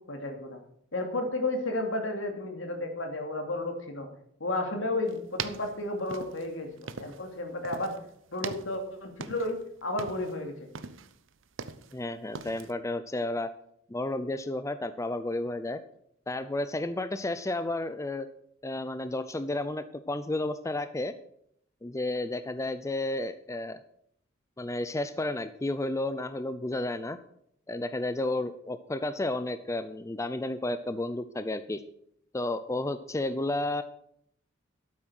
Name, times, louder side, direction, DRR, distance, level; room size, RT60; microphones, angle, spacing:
voice 1, 0.1-0.6 0.9-4.1 4.4-7.9 8.3-10.7, left 2 dB, 75° left, 4 dB, 2.7 m, -32 dB
sound 1, 5.1-7.4 7.6-8.0 8.3-9.6 9.9-10.4 10.7-12.0 12.3-12.7, right 5 dB, 70° right, 0.8 m, -40 dB
voice 2, 11.9-13.5 13.9-15.8 16.3-18.3 18.6-21.1 21.8-23.8 24.6-27.2 27.7-31.8 32.3-33.8, left 2 dB, 15° left, 12 dB, 0.5 m, -32 dB
12.5 x 8.6 x 6.3 m, 0.70 s
head